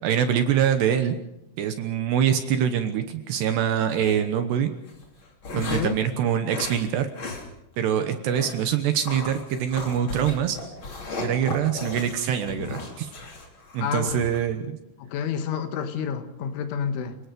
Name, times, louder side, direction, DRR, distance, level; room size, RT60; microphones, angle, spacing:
voice 1, 0.0-1.2 1.6-4.7 5.5-7.1 7.8-10.6 11.2-13.1 13.7-14.8, right 9 dB, 70° right, 8 dB, 2.8 m, -24 dB
sound 1, 3.9-4.2 4.9-6.0 6.5-6.8 7.1-7.5 7.7-7.8 8.3-8.6 9.0-14.4, left 3 dB, 30° left, 3.0 m, -36 dB
voice 2, 5.6-6.0 13.8-14.3 15.0-17.2, left 7 dB, 75° left, 8 dB, 3.8 m, -29 dB
29.5 x 19.0 x 5.2 m, 0.84 s
omnidirectional pair, 5.8 m